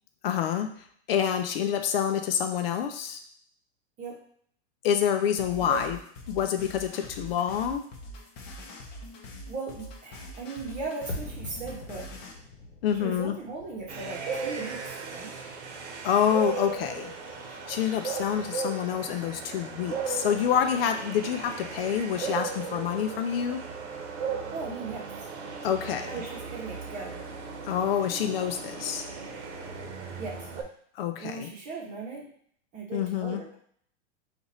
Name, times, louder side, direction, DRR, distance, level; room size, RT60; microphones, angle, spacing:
voice 1, 0.2-0.7 1.1-3.2 4.8-6.0 6.3-7.9 12.8-13.4 16.0-17.1 17.7-23.6 25.6-26.2 27.7-29.0 31.0-31.5 32.9-33.4, left 9 dB, 60° left, 6 dB, 0.6 m, -27 dB
sound 1, 5.4-12.3, left 1 dB, 40° left, 0.9 m, -44 dB
voice 2, 9.5-12.1 13.0-15.3 24.5-25.1 26.1-27.2 30.2-30.3 31.2-32.3 32.7-33.6, right 4 dB, 20° right, -2 dB, 1.0 m, -38 dB
sound 2, 11.1-16.0 16.3-16.4, left 2 dB, 85° left, 1.0 m, -44 dB
sound 3, 13.9-30.6, right 5 dB, 85° right, 1.0 m, -37 dB
4.7 x 2.5 x 4.1 m, 0.62 s
supercardioid pair, 155°, 34 cm